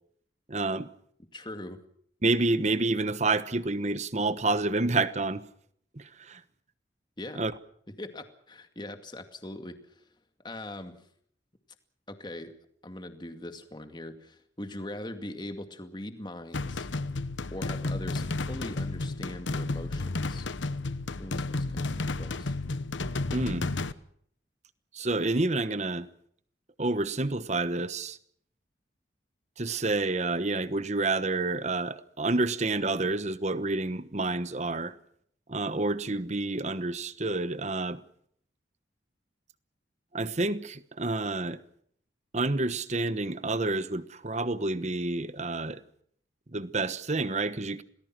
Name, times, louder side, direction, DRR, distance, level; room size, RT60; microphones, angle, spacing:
voice 1, 0.5-0.9 2.2-5.4 6.0-6.4 7.4-7.5 23.3-23.7 24.9-26.1 26.8-28.2 29.6-34.9 35.5-38.0 40.1-41.6 42.3-45.8 46.5-47.8, right 2 dB, 40° right, 1.1 m, -29 dB
voice 2, 1.3-1.8 7.2-7.4 8.0-10.1 10.4-11.0 12.1-12.5 12.8-16.9 17.5-20.5 21.2-22.6, left 1 dB, 25° left, 2.2 m, -41 dB
sound 1, 16.5-23.9, left 2 dB, 90° left, 1.0 m, -32 dB
28.0 x 19.5 x 6.1 m
head